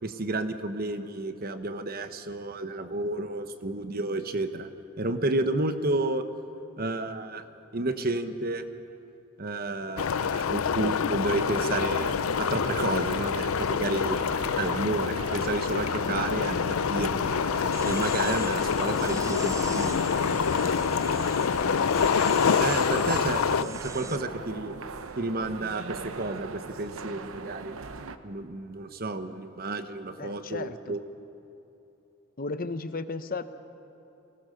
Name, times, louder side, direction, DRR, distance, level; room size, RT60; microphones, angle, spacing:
voice 1, 0.0-4.7 5.0-6.2 6.8-7.4 7.7-8.7 9.4-14.2 14.6-17.1 17.8-20.2 22.6-24.8 25.2-27.8 28.2-31.0, right 2 dB, 45° right, 9 dB, 1.1 m, -31 dB
sound 1, 10.0-23.6, left 6 dB, 85° left, 0.5 m, -26 dB
sound 2, 11.3-28.2, right 4 dB, 80° right, 0.9 m, -40 dB
sound 3, 17.7-24.2, right 5 dB, 15° right, 0.4 m, -42 dB
voice 2, 22.7-23.1 23.6-24.4 30.2-31.0 32.4-33.4, left 3 dB, 45° left, 11 dB, 0.8 m, -36 dB
25.0 x 18.0 x 6.8 m, 3.0 s
head